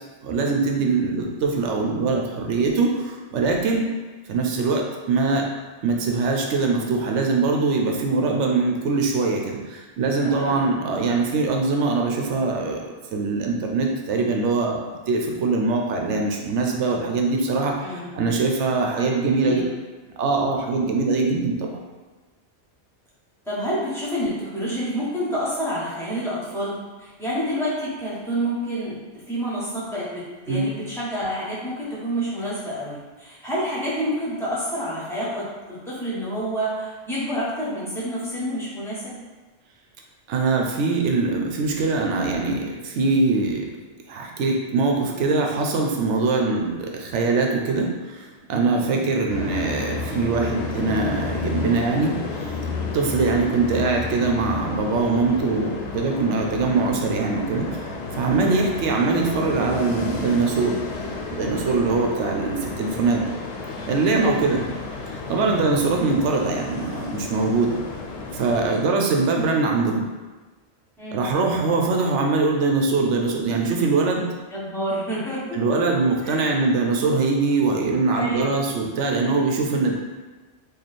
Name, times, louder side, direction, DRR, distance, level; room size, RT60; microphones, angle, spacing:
voice 1, 0.2-3.8 4.3-5.5 5.8-12.8 13.1-19.6 20.2-21.8 30.5-30.7 40.3-43.7 44.1-52.6 52.9-60.8 61.3-63.2 63.9-64.6 65.3-67.8 68.3-70.1 71.1-74.2 75.5-79.9, right 3 dB, 85° right, 1 dB, 0.9 m, -22 dB
voice 2, 10.2-10.9 17.8-18.1 18.9-19.1 19.4-19.7 23.4-39.1 48.8-49.0 61.8-62.0 64.2-64.5 65.4-65.6 68.6-68.8 71.0-71.2 74.5-75.6 76.2-76.4 78.1-78.4 79.2-79.4, equal, ahead, -9 dB, 1.1 m, -29 dB
sound 1, 49.3-68.7, left 3 dB, 70° left, 0.8 m, -32 dB
3.2 x 2.4 x 4.1 m, 1.3 s
omnidirectional pair, 1.2 m